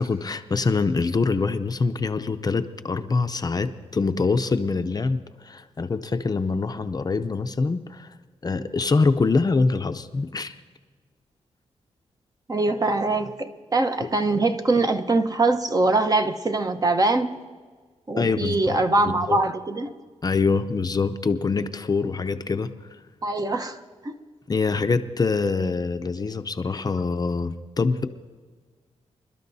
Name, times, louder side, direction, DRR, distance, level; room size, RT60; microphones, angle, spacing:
voice 1, 0.0-8.1 8.4-10.5 14.0-14.1 18.2-18.8 19.0-19.4 20.2-23.0 24.5-28.1, left 4 dB, 35° left, 9 dB, 0.6 m, -24 dB
voice 2, 12.5-17.3 18.1-19.9 23.2-23.8 24.0-24.1, right 2 dB, 35° right, 6 dB, 0.9 m, -23 dB
27.0 x 12.5 x 2.7 m, 1.5 s
cardioid pair, 90°, 11 cm